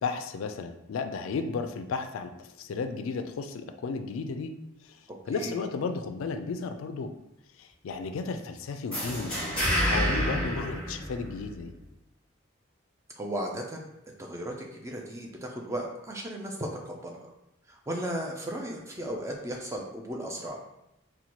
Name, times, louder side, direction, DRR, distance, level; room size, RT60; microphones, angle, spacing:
voice 1, 0.0-4.5 4.8-7.1 7.6-9.4 9.8-11.7, left 4 dB, 80° left, 7 dB, 0.3 m, -34 dB
voice 2, 5.1-5.6 13.2-13.9 14.2-17.3 17.7-20.6, right 1 dB, 15° right, 0 dB, 0.4 m, -36 dB
sound 1, 8.9-11.6, equal, 5° left, 1.2 m, -28 dB
4.1 x 2.2 x 2.9 m, 0.88 s
head